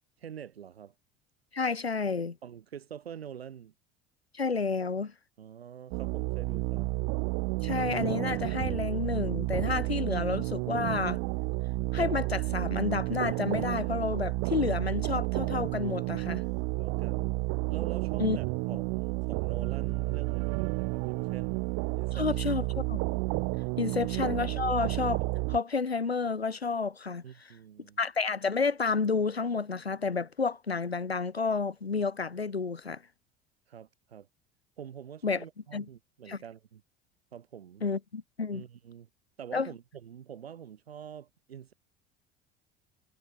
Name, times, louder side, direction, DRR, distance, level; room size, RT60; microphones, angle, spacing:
voice 1, 0.2-0.9 2.4-3.7 5.4-6.9 16.5-17.3 17.7-21.7 22.0-22.6 27.2-28.0 33.7-34.3 34.8-36.8 37.3-37.8 38.5-39.1 39.4-41.7, right 8 dB, 80° right, 4.8 m, -46 dB
voice 2, 1.5-2.4 4.3-5.1 7.6-11.2 11.9-16.4 18.2-18.4 22.1-23.0 23.8-25.2 25.5-27.2 28.0-33.0 35.2-35.4 35.7-35.9 36.3-36.4 37.8-38.6 39.5-39.7, left 4 dB, 90° left, 4.1 m, -30 dB
sound 1, 5.9-25.6, right 30 dB, 60° right, 3.3 m, -31 dB
figure-of-eight pair, 65°, 30 cm